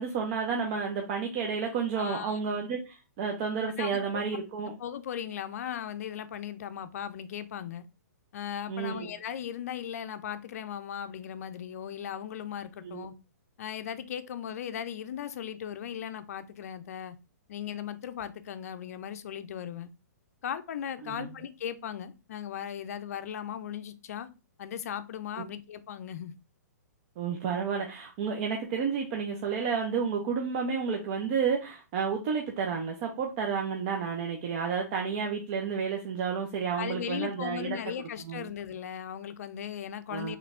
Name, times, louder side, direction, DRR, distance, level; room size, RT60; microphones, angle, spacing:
voice 1, 0.0-4.7 8.7-9.1 12.8-13.1 21.0-21.3 27.2-37.8 38.2-38.5 40.1-40.4, right 6 dB, 40° right, 0.5 m, -31 dB
voice 2, 1.9-2.4 3.8-4.2 4.7-7.8 8.3-13.1 13.6-17.2 17.5-19.9 20.4-24.3 24.6-26.3 36.8-40.4, left 9 dB, 60° left, 0.4 m, -37 dB
3.2 x 3.1 x 2.4 m
hypercardioid pair, 135°, 9 cm